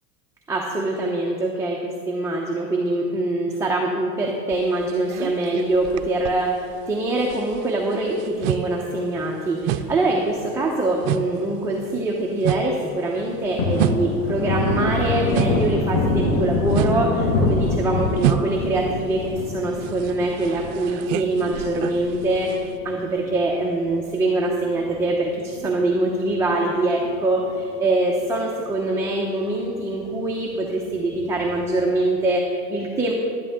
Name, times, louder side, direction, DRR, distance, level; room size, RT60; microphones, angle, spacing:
voice 1, 0.5-33.1, right 2 dB, 5° right, -3 dB, 0.8 m, -24 dB
sound 1, 4.5-6.9 7.2-15.8 16.1-22.8, right 13 dB, 70° right, 0.6 m, -29 dB
Thunder, 13.2-23.9 24.3-24.4 24.7-26.2 26.5-26.7 27.0-27.8 28.2-28.3 28.7-28.8 31.1-31.7, left 2 dB, 85° left, 1.9 m, -26 dB
11.5 x 11.0 x 3.7 m, 2.5 s
supercardioid pair, 140°, 39 cm